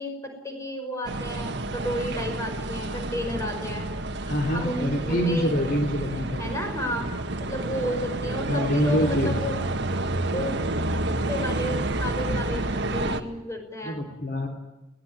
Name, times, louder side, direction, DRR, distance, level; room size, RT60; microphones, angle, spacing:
voice 1, 0.0-3.9 4.5-5.5 6.4-7.1 7.4-9.6 10.3-10.6 10.9-14.0, equal, 15° left, 4 dB, 5.4 m, -32 dB
sound 1, 1.1-13.2, right 2 dB, 55° right, 1.7 m, -29 dB
voice 2, 4.3-6.5 8.5-9.3 13.8-14.5, equal, 45° left, 3 dB, 3.2 m, -25 dB
22.0 x 18.0 x 9.1 m, 1.0 s
head